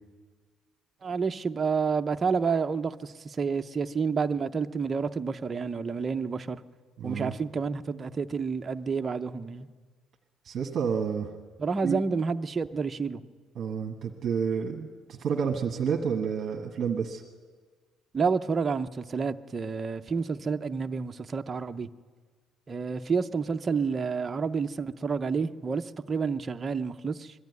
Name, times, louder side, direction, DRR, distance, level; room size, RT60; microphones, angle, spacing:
voice 1, 1.0-6.6 7.0-9.7 11.6-13.2 18.1-21.9 22.7-27.3, right 5 dB, 20° right, 7 dB, 0.5 m, -29 dB
voice 2, 7.0-7.3 10.4-11.3 11.8-12.0 13.5-17.2, right 6 dB, 40° right, 2 dB, 1.3 m, -29 dB
22.5 x 13.0 x 9.4 m, 1.5 s
cardioid pair, 175°, 0 cm